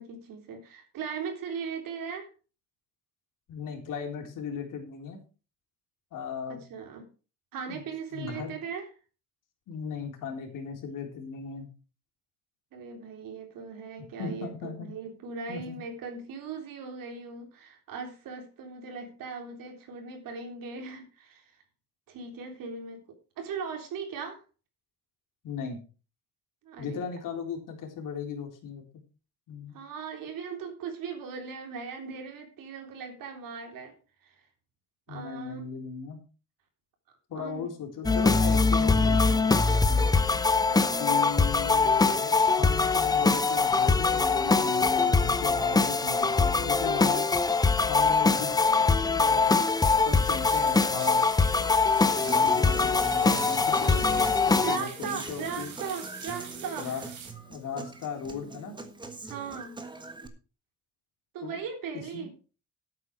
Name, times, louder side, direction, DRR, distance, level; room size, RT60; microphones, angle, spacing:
voice 1, 0.0-2.3 6.5-7.1 7.5-8.9 12.7-21.4 22.1-23.0 23.4-24.4 26.6-27.0 29.7-33.9 34.2-34.3 35.1-35.6 37.4-37.7 40.7-41.2 54.6-57.1 59.3-59.8 61.3-62.3, right 5 dB, 85° right, 4 dB, 3.8 m, -38 dB
voice 2, 3.5-5.2 6.1-6.6 7.7-7.8 8.1-8.6 9.7-11.7 14.2-14.9 15.5-15.8 25.4-25.8 26.8-28.8 29.5-29.7 35.1-36.2 37.3-40.2 41.0-47.3 47.9-48.6 49.1-49.6 50.1-51.3 52.0-55.7 56.8-57.0 57.4-58.8 61.4-61.6 62.1-62.3, left 6 dB, 75° left, 2 dB, 3.9 m, -37 dB
sound 1, 38.0-54.8, left 4 dB, 10° left, 0.6 m, -23 dB
sound 2, 49.4-57.3, right 6 dB, 60° right, 3.6 m, -44 dB
Human voice / Acoustic guitar, 52.3-60.3, right 3 dB, 15° right, 1.5 m, -42 dB
12.5 x 8.7 x 4.8 m, 0.35 s
cardioid pair, 170°, 33 cm